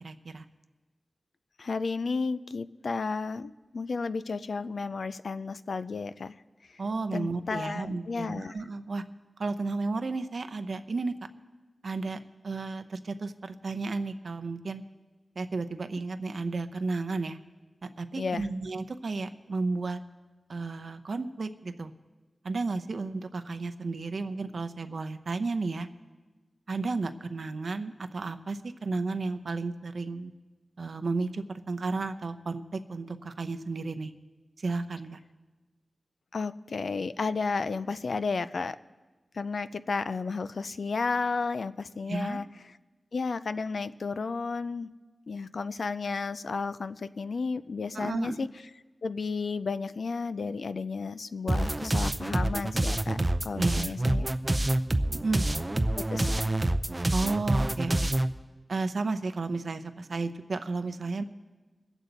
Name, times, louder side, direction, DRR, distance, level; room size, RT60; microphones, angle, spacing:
voice 1, 0.0-0.4 6.8-9.0 9.4-11.1 11.8-12.2 12.4-14.8 15.4-17.4 17.8-20.0 20.5-21.9 22.4-25.9 26.7-30.3 30.8-34.1 34.6-35.2 42.1-42.4 47.9-48.4 53.6-53.9 55.2-55.5 57.1-58.1 58.7-61.2, right 3 dB, 70° right, 8 dB, 0.7 m, -33 dB
voice 2, 1.6-6.3 7.1-8.5 18.2-18.5 36.3-38.8 39.3-42.5 43.1-44.9 45.3-48.5 49.0-54.3 56.0-56.3, left 4 dB, 75° left, 13 dB, 0.4 m, -32 dB
sound 1, 51.5-58.3, right 1 dB, 25° right, 0.5 m, -27 dB
23.5 x 8.1 x 4.0 m, 1.3 s
wide cardioid pair, 70°, 0 cm